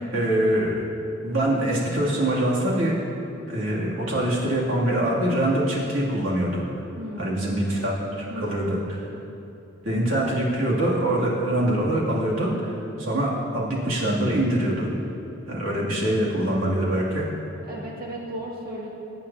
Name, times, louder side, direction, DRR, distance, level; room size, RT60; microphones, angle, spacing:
voice 1, 0.1-0.7 1.2-2.9 3.5-6.6 7.2-8.8 9.8-14.9 15.5-17.3, right 1 dB, 75° right, -6 dB, 2.8 m, -24 dB
voice 2, 7.0-7.5 8.3-8.7 17.6-18.9, right 1 dB, 45° right, -4 dB, 2.2 m, -35 dB
23.0 x 8.9 x 2.9 m, 3.0 s
head